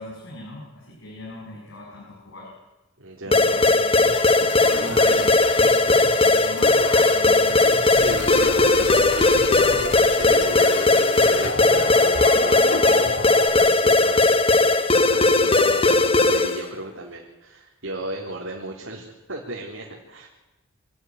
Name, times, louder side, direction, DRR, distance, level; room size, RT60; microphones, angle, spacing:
voice 1, 0.0-2.5 3.3-4.1 4.7-5.9 6.2-8.2, left 1 dB, 80° left, -4 dB, 7.3 m, -39 dB
voice 2, 3.0-3.6 4.8-5.2 7.9-10.8 11.2-20.3, right 2 dB, 90° right, -2 dB, 3.8 m, -35 dB
sound 1, 3.3-16.6, left 2 dB, 30° left, 1.1 m, -18 dB
sound 2, 4.0-13.5, left 3 dB, 60° left, 2.5 m, -31 dB
25.5 x 13.5 x 9.7 m, 1.0 s
head